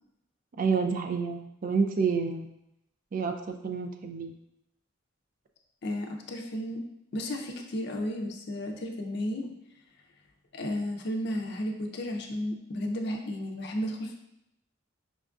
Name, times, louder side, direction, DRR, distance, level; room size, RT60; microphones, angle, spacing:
voice 1, 0.6-2.5 3.1-4.3, right 5 dB, 45° right, 6 dB, 0.3 m, -29 dB
voice 2, 5.8-6.8 7.1-9.5 10.5-14.2, left 1 dB, 55° left, 3 dB, 0.5 m, -33 dB
5.1 x 2.3 x 2.4 m, 0.83 s
head